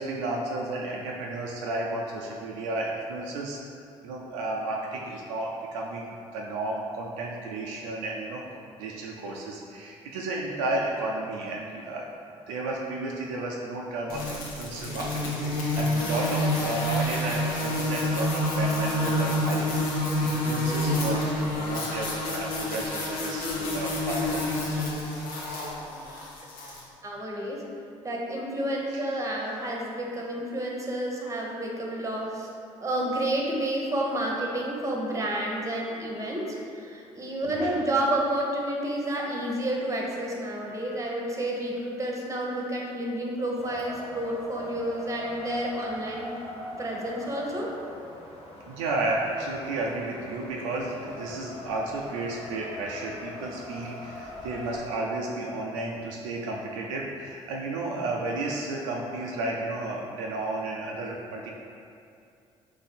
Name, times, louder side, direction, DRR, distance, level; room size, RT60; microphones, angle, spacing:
voice 1, 0.0-3.6 4.0-8.4 8.8-12.1 12.5-24.8 25.2-25.8 28.9-29.0 37.5-37.7 48.7-61.5, right 2 dB, 75° right, -2 dB, 0.4 m, -33 dB
sound 1, 14.1-26.8, left 1 dB, 65° left, 0.8 m, -28 dB
voice 2, 27.0-27.6 28.0-32.5 32.8-46.3 46.8-47.7, right 1 dB, 20° right, -2 dB, 0.9 m, -30 dB
Wind, 43.6-54.8, left 1 dB, 40° left, 1.1 m, -41 dB
3.9 x 2.7 x 4.2 m, 2.5 s
figure-of-eight pair, 50°, 16 cm